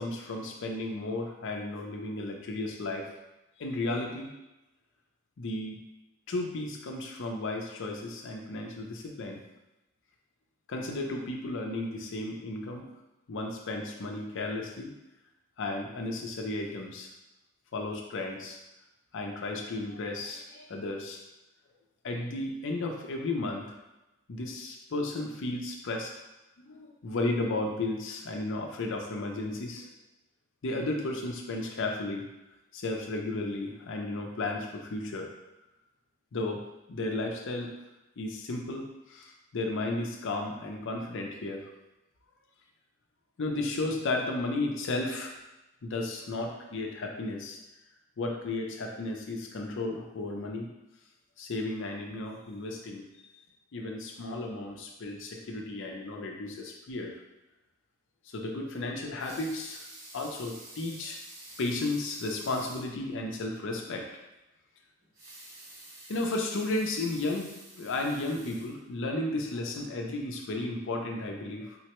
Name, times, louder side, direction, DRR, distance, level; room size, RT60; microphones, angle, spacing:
voice 1, 0.0-3.1 3.6-4.3 5.4-5.8 6.3-9.4 10.7-12.9 13.3-14.9 15.6-17.1 17.7-18.6 19.1-21.2 22.0-23.7 24.3-26.1 26.6-29.9 30.6-32.2 32.7-35.3 36.3-36.6 36.9-37.7 38.2-41.7 43.4-45.3 45.8-47.6 48.2-50.7 51.4-53.1 53.7-57.1 58.3-59.8 60.1-61.2 61.6-64.1 66.1-67.5 67.8-71.8, left 2 dB, 60° left, 2 dB, 0.5 m, -34 dB
Water tap faucet / Sink (filling or washing) / Liquid, 59.2-62.9 63.4-63.5 63.8-63.9 65.0-69.2 69.7-69.8, right 1 dB, 80° right, 1.3 m, -49 dB
3.7 x 2.2 x 2.9 m, 0.96 s
head